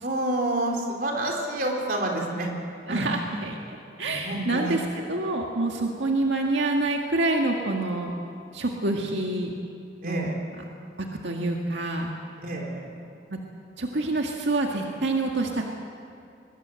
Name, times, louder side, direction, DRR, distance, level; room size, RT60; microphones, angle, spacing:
voice 1, 0.0-2.5 2.9-3.1 4.0-4.8 10.0-10.4 12.4-12.9, right 1 dB, 50° right, 1 dB, 3.8 m, -28 dB
voice 2, 2.9-4.8 5.1-8.1 8.5-9.5 10.0-10.3 11.2-12.1 13.3-13.4 13.8-15.6, right 2 dB, 85° right, 1 dB, 1.9 m, -27 dB
22.5 x 20.5 x 7.7 m, 2.6 s
head